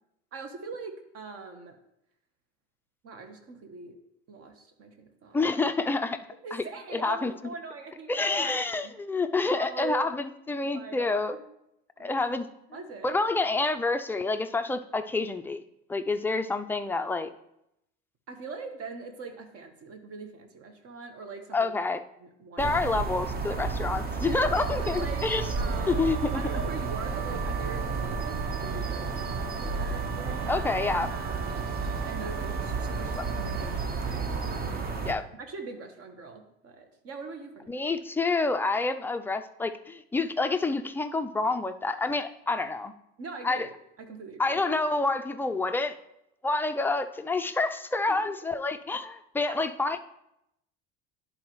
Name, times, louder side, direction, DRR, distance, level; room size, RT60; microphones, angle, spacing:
voice 1, 0.3-1.8 3.0-4.0 4.3-5.4 6.4-8.6 8.8-8.9 9.5-10.1 10.7-11.4 12.0-12.3 12.7-13.2 18.3-21.7 22.2-22.7 24.3-25.3 25.5-26.1 26.3-30.7 31.1-31.8 32.0-34.8 35.2-37.8 42.5-42.7 43.2-43.7 44.0-44.8 48.1-48.4 49.5-49.7, right 4 dB, 50° right, 6 dB, 1.2 m, -42 dB
voice 2, 5.3-6.2 6.5-6.6 6.9-7.3 8.1-11.3 12.0-12.5 13.0-15.6 15.9-17.3 21.5-22.0 22.6-25.4 25.8-26.3 30.4-31.1 33.2-33.3 35.1-35.2 37.7-42.9 43.4-43.7 44.4-46.0 46.4-50.0, left 3 dB, 5° left, 7 dB, 0.3 m, -28 dB
sound 1, 22.6-35.1, right 4 dB, 30° right, 0.7 m, -32 dB
Wind instrument woodwind instrument, 24.7-33.8, right 12 dB, 85° right, 0.5 m, -41 dB
11.0 x 4.0 x 3.1 m, 0.81 s
supercardioid pair, 95°, 31 cm